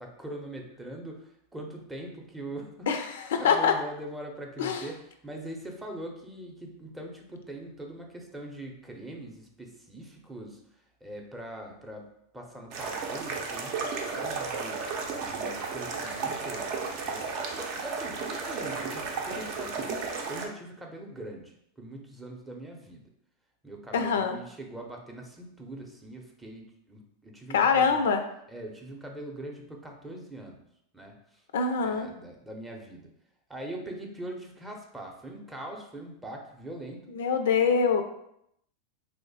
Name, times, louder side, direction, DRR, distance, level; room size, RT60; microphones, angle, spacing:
voice 1, 0.0-2.9 3.3-10.6 11.0-12.1 12.3-14.8 15.1-16.7 17.0-17.2 17.6-19.9 20.3-23.0 23.6-28.1 28.5-30.6 30.9-31.4 31.8-33.1 33.5-37.1, right 1 dB, 10° right, 1 dB, 0.6 m, -42 dB
voice 2, 2.9-3.7 4.6-4.8 23.9-24.4 27.5-28.2 31.5-32.1 37.1-38.0, left 6 dB, 80° left, 7 dB, 0.4 m, -24 dB
sound 1, 12.7-20.5, right 4 dB, 55° right, 0.6 m, -33 dB
3.0 x 2.0 x 4.0 m, 0.74 s
hypercardioid pair, 120°, 0 cm